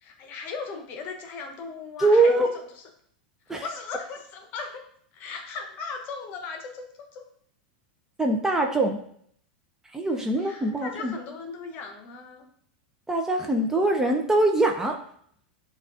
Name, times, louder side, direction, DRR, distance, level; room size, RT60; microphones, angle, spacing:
voice 1, 0.0-2.5 3.6-4.8 5.1-7.2 10.3-12.4, left 5 dB, 45° left, 3 dB, 0.8 m, -38 dB
voice 2, 2.0-2.5 3.5-3.6 8.2-9.0 9.9-11.1 13.1-15.0, right 2 dB, 10° right, 3 dB, 0.4 m, -22 dB
6.5 x 2.3 x 2.4 m, 0.65 s
hypercardioid pair, 110°, 5 cm